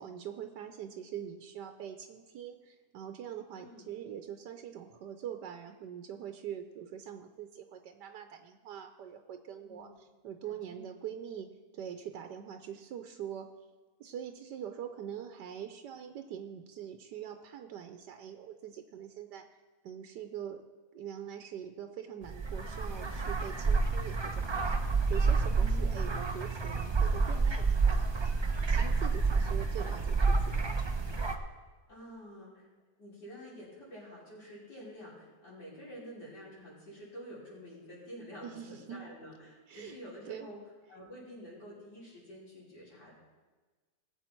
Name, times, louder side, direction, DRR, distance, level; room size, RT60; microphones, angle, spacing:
voice 1, 0.0-13.5 14.0-19.5 19.8-20.6 20.9-24.8 25.1-30.9 38.4-39.1 39.7-40.0 40.3-40.5, right 9 dB, 85° right, 6 dB, 1.4 m, -43 dB
voice 2, 3.5-3.9 9.6-9.9 10.4-10.9 25.5-26.2 31.9-32.7 33.0-40.6 40.9-43.1, equal, 80° left, -8 dB, 5.6 m, -49 dB
sound 1, 22.2-31.4, right 4 dB, 35° right, 0.4 m, -29 dB
19.0 x 7.7 x 4.5 m, 1.3 s
omnidirectional pair, 1.8 m